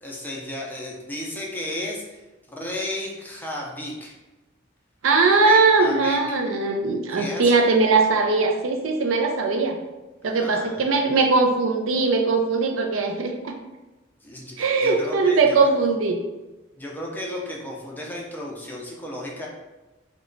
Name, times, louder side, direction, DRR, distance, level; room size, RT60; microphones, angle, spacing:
voice 1, 0.0-2.2 2.5-4.1 5.3-6.4 7.1-7.6 10.2-10.9 14.2-15.6 16.8-19.5, left 1 dB, 10° left, -2 dB, 0.5 m, -34 dB
voice 2, 5.0-9.8 10.2-13.6 14.6-16.2, right 3 dB, 80° right, 3 dB, 0.5 m, -20 dB
3.0 x 2.2 x 3.8 m, 1.1 s
head